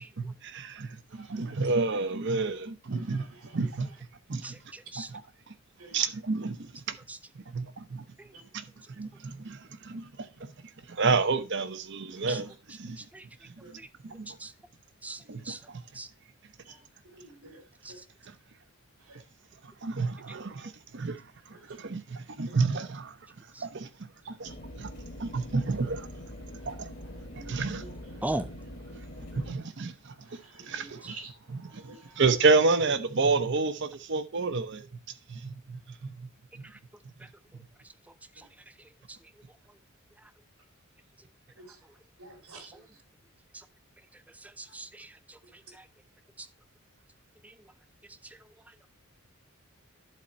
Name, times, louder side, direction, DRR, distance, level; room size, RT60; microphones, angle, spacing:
voice 1, 0.2-3.3 3.5-3.9 4.3-4.5 5.0-5.1 5.9-6.9 7.5-8.0 9.0-9.6 9.8-10.0 11.0-12.5 12.8-13.0 14.0-14.3 15.3-15.5 19.8-21.1 21.8-23.1 23.6-23.9 24.4-24.5 24.8-24.9 25.2-26.0 26.7-26.9 27.5-27.8 29.4-29.9 30.7-31.0 31.5-31.6 32.2-34.8 35.3-35.4 35.7-36.1, right 4 dB, 50° right, 0.8 m, -29 dB
voice 2, 4.4-5.1 7.1-7.2 8.2-8.3 12.3-12.4 13.0-13.3 13.8-13.9 14.4-14.5 15.0-15.6 15.9-16.1 17.8-17.9 23.5-23.6 28.2-28.5 31.0-31.1 38.4-38.5 42.7-42.9 44.4-45.4 45.7-45.8 46.4-46.5 47.4-47.5, right 1 dB, 5° right, 0.4 m, -38 dB
voice 3, 17.1-17.6 22.5-22.6 27.4-27.5 30.7-31.3 42.2-42.7, right 3 dB, 80° right, 2.2 m, -46 dB
sound 1, 24.4-29.6, left 1 dB, 45° left, 1.6 m, -43 dB
11.0 x 4.3 x 4.2 m
head